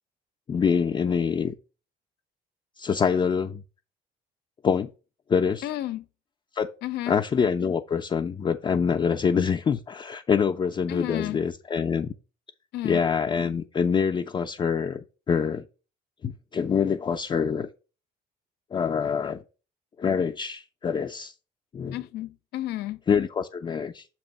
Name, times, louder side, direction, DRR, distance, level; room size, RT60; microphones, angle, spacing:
voice 1, 0.5-1.5 2.8-3.6 4.6-4.9 5.3-5.7 6.5-6.7 7.1-12.1 12.8-15.6 16.2-17.7 18.7-19.4 20.0-21.3 21.7-22.0 23.1-24.1, left 6 dB, 30° left, 0.4 m, -25 dB
voice 2, 5.6-6.1 6.8-7.2 10.9-11.4 12.7-13.0 21.9-23.0, left 14 dB, 80° left, 0.6 m, -32 dB
6.9 x 2.9 x 5.4 m
cardioid pair, 110°, 17 cm